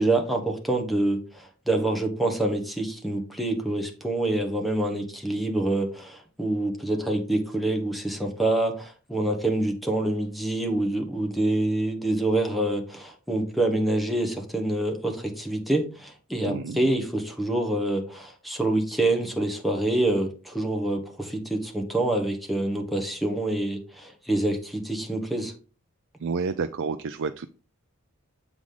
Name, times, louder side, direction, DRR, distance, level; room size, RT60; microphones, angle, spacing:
voice 1, 0.0-25.5, right 1 dB, ahead, 2 dB, 1.2 m, -26 dB
voice 2, 16.4-16.8 26.2-27.5, right 5 dB, 65° right, 9 dB, 0.4 m, -29 dB
7.3 x 5.0 x 3.8 m, 0.36 s
head